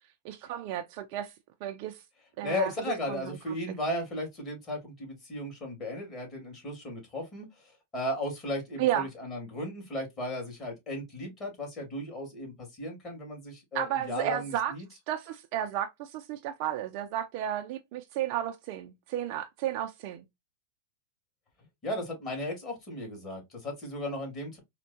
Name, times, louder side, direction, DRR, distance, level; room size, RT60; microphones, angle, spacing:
voice 1, 0.2-1.3 1.6-2.0 2.4-2.7 3.1-3.2 3.5-3.6 8.8-9.1 13.7-14.7 15.1-20.2, right 11 dB, 50° right, 0.5 m, -32 dB
voice 2, 2.4-14.9 21.8-24.6, left 1 dB, 25° left, 2.1 m, -35 dB
4.4 x 2.2 x 2.7 m
hypercardioid pair, 130°, 0 cm